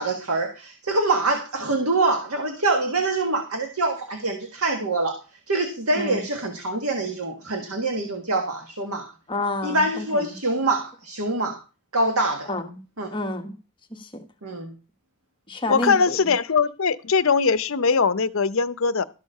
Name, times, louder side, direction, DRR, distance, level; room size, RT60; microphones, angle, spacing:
voice 1, 0.0-5.2 5.5-9.1 9.6-11.6 11.9-12.5 13.0-13.1 14.4-14.7, right 2 dB, 80° right, 1.6 m, -25 dB
voice 2, 9.3-10.4 12.4-12.8 13.1-13.5 13.9-14.2 15.5-16.2, left 1 dB, 20° left, 1.1 m, -30 dB
voice 3, 15.7-19.0, left 5 dB, 60° left, 0.7 m, -21 dB
13.0 x 6.8 x 5.5 m
head